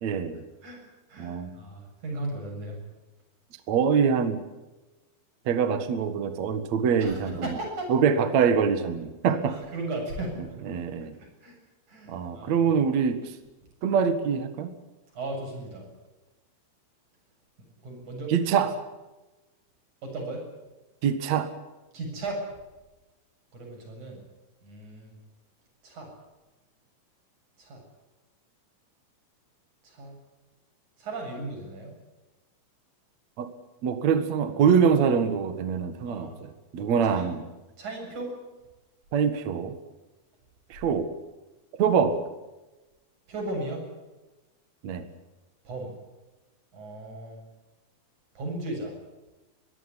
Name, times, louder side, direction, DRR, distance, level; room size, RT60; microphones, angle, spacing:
voice 1, 0.0-0.4 1.2-1.5 3.7-4.4 5.5-7.6 7.9-9.6 10.7-11.1 12.1-13.4 13.8-14.8 18.3-18.7 21.0-21.5 33.4-33.5 33.8-37.4 39.1-39.8 40.7-41.1 41.8-42.2 44.8-45.1, right 6 dB, 55° right, 9 dB, 2.0 m, -24 dB
voice 2, 1.1-2.8 7.0-7.9 9.2-10.4 11.2-11.6 11.9-12.6 15.1-15.9 17.8-18.7 20.0-20.4 21.9-22.4 23.5-24.2 24.6-25.1 25.8-26.1 27.6-27.8 29.8-30.2 31.0-31.9 36.0-36.4 36.8-37.3 37.8-38.3 43.3-43.8 45.6-45.9 46.7-47.4 48.3-48.9, right 2 dB, 40° right, 0 dB, 8.6 m, -36 dB
23.0 x 16.5 x 10.0 m, 1.1 s
omnidirectional pair, 5.6 m